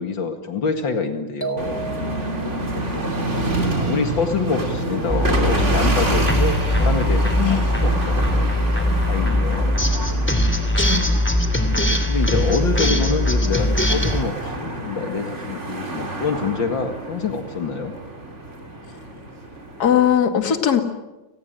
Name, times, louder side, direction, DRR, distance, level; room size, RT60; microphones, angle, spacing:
voice 1, 0.0-1.8 2.8-3.1 3.7-9.8 11.7-17.9, left 4 dB, 70° left, 6 dB, 2.7 m, -26 dB
sound 1, 1.4-2.6, right 5 dB, 20° left, 3.4 m, -31 dB
sound 2, 1.6-20.2, right 1 dB, 35° right, 3.8 m, -28 dB
sound 3, 5.1-14.2, left 1 dB, 5° left, 2.6 m, -20 dB
voice 2, 7.4-7.7 10.8-11.2 19.8-20.8, left 9 dB, 50° left, 7 dB, 2.7 m, -19 dB
30.0 x 19.5 x 9.1 m, 1.1 s
omnidirectional pair, 2.2 m